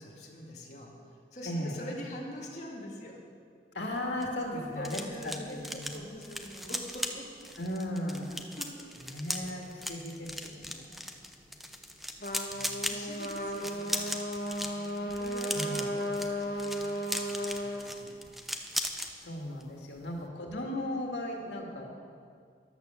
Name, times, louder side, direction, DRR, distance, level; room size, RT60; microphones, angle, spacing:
voice 1, 0.0-3.2 4.5-7.5 8.3-9.1 11.4-12.0 12.8-18.2, left 1 dB, 40° left, -3 dB, 2.3 m, -45 dB
voice 2, 1.5-1.8 3.7-6.0 7.6-8.3 9.0-11.0 12.5-12.9 15.5-15.9 19.2-21.9, left 1 dB, 90° left, 0 dB, 2.1 m, -37 dB
sound 1, 3.9-19.1 19.4-19.7 20.0-20.2, equal, ahead, 0.7 m, -38 dB
Trumpet, 12.2-17.8, equal, 55° left, 1.6 m, -35 dB
13.0 x 11.0 x 7.0 m, 2.2 s
head